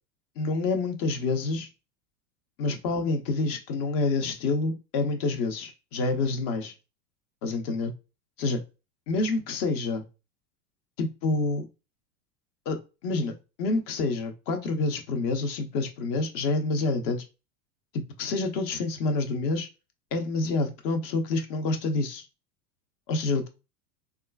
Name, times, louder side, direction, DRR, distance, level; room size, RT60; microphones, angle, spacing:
voice 1, 0.4-1.7 2.6-6.7 7.4-7.9 8.4-8.6 9.1-10.0 11.0-11.7 12.7-13.3 13.6-17.2 18.2-19.7 20.1-22.2 23.1-23.5, left 3 dB, 40° left, 0.8 m, -27 dB
3.6 x 2.4 x 2.2 m
supercardioid pair, 125°, 50 cm